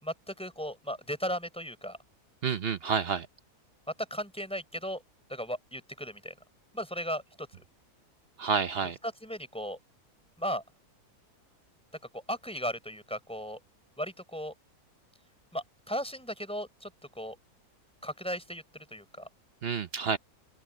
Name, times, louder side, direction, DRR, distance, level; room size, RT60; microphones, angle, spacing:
voice 1, 0.0-2.0 4.1-5.0 5.3-6.4 6.7-7.6 9.2-9.8 10.4-10.6 12.1-13.6 14.0-14.5 15.5-17.4 18.0-18.6 18.9-19.3, equal, 5° left, 4.6 m, -36 dB
voice 2, 2.4-3.3 8.4-9.0 19.6-20.2, right 6 dB, 55° right, 0.7 m, -29 dB
open air
omnidirectional pair, 1.7 m